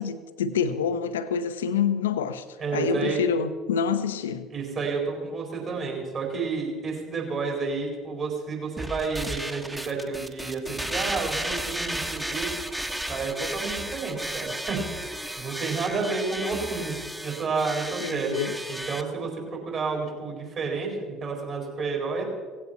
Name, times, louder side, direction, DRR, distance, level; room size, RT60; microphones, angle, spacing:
voice 1, 0.0-2.4 2.7-4.5 18.0-18.6, left 6 dB, 75° left, 12 dB, 0.8 m, -27 dB
voice 2, 2.6-3.2 4.5-12.5 13.1-18.4 18.7-19.3 19.7-22.2, right 4 dB, 45° right, 0 dB, 4.7 m, -30 dB
sound 1, 8.8-19.0, right 1 dB, 10° right, 1.3 m, -33 dB
17.0 x 16.0 x 4.5 m, 1.4 s
figure-of-eight pair, 60°, 0 cm